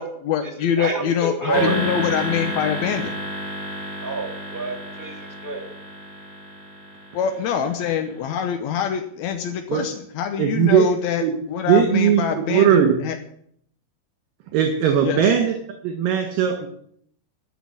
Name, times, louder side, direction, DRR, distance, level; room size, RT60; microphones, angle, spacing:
voice 1, 0.0-3.1 7.1-13.2 15.0-15.3, left 8 dB, 75° left, 6 dB, 1.7 m, -25 dB
voice 2, 0.6-1.8 4.0-5.7, right 4 dB, 10° right, 1 dB, 1.0 m, -28 dB
sound 1, 1.5-7.9, equal, 30° right, 4.0 m, -31 dB
voice 3, 10.4-10.9 11.2-11.3 11.7-13.0 14.5-15.5 15.8-16.7, right 9 dB, 70° right, 4 dB, 3.2 m, -18 dB
13.5 x 6.3 x 8.5 m, 0.65 s
omnidirectional pair, 4.3 m